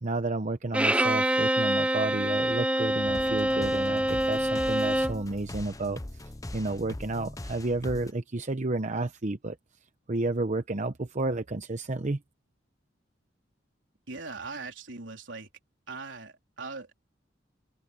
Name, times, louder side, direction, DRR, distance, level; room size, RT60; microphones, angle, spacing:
voice 1, 0.0-6.0 6.5-9.6 10.1-12.2, right 2 dB, 40° right, 0.9 m, -31 dB
Bowed string instrument, 0.7-5.2, right 1 dB, 5° right, 1.2 m, -26 dB
sound 1, 3.0-8.1, left 1 dB, 20° left, 0.8 m, -40 dB
voice 2, 14.1-15.5 15.9-16.9, right 4 dB, 75° right, 3.9 m, -40 dB
open air
head